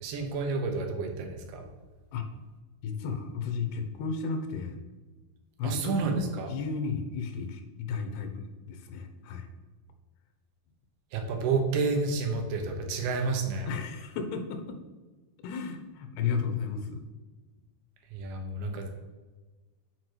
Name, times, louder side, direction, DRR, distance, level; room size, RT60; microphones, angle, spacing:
voice 1, 0.0-1.6 5.6-6.5 11.1-13.7 18.1-18.9, right 4 dB, 80° right, 4 dB, 3.1 m, -30 dB
voice 2, 2.8-4.8 5.6-6.0 6.5-9.5 13.6-14.8 15.4-17.0, left 5 dB, 85° left, 6 dB, 3.0 m, -33 dB
8.1 x 4.9 x 4.5 m, 1.3 s
omnidirectional pair, 4.5 m